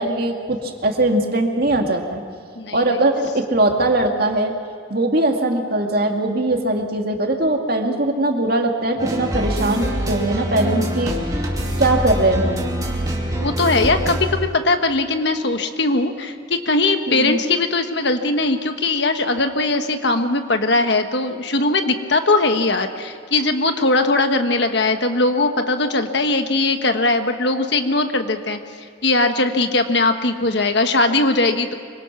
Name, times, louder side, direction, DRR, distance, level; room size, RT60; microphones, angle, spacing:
voice 1, 0.0-2.2 2.7-4.5 4.9-11.2 11.8-12.7 17.1-17.4, right 2 dB, 50° right, 3 dB, 2.2 m, -20 dB
sound 1, 9.0-14.2, equal, 20° right, 2.5 m, -24 dB
voice 2, 13.3-28.6 29.0-31.7, left 2 dB, 55° left, 7 dB, 1.4 m, -20 dB
25.5 x 24.0 x 6.0 m, 2.3 s
head